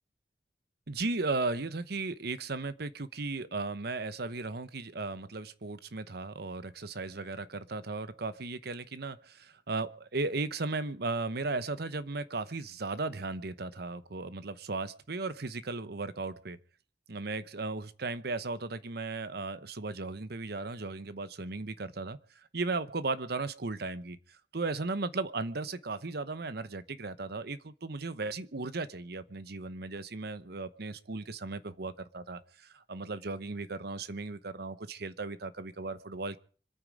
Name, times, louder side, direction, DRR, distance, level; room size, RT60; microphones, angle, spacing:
voice 1, 0.9-16.6 17.1-36.4, right 3 dB, 60° right, 14 dB, 1.0 m, -36 dB
26.0 x 9.2 x 5.0 m, 0.42 s
head